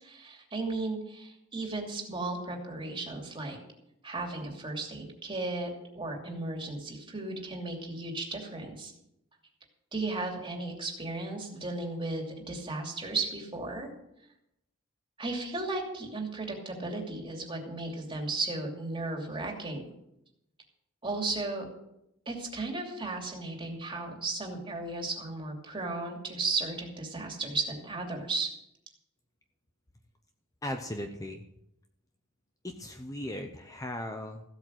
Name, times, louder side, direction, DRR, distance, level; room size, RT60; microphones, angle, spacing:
voice 1, 0.0-3.6 4.0-8.9 9.9-13.9 15.2-19.9 21.0-21.7 22.3-28.5, right 3 dB, 25° right, 1 dB, 2.7 m, -35 dB
voice 2, 30.6-31.4 32.6-34.4, left 1 dB, 15° left, 5 dB, 0.8 m, -37 dB
15.5 x 8.3 x 6.4 m, 0.82 s
head